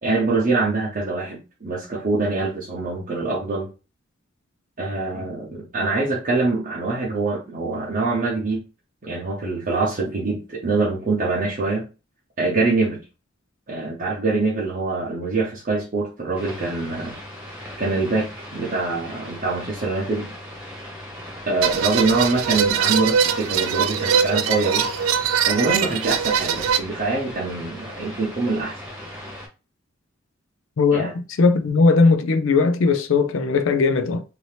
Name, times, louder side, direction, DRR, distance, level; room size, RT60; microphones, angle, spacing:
voice 1, 0.0-3.7 4.8-8.6 9.0-11.9 12.4-13.0 13.7-17.2 17.8-20.3 21.5-24.9 25.5-28.8 30.9-31.1, right 3 dB, 45° right, 0.8 m, -24 dB
sound 1, 16.3-29.5, equal, 5° right, 1.2 m, -38 dB
sound 2, 21.6-26.8, right 7 dB, 85° right, 0.4 m, -22 dB
voice 2, 30.8-34.2, left 4 dB, 65° left, 0.4 m, -18 dB
2.8 x 2.7 x 3.2 m
head